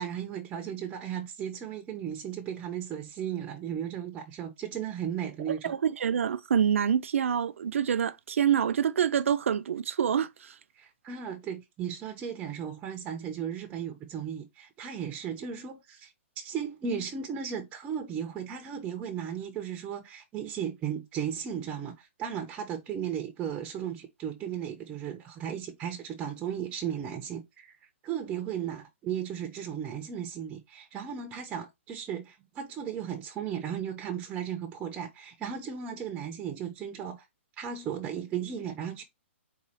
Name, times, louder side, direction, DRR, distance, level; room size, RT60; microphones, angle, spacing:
voice 1, 0.0-5.8 10.8-27.8 28.0-37.3 37.6-39.0, right 8 dB, 15° right, 0.5 m, -35 dB
voice 2, 5.6-10.5, right 8 dB, 80° right, 0.5 m, -26 dB
4.2 x 2.3 x 4.1 m
hypercardioid pair, 150°, 7 cm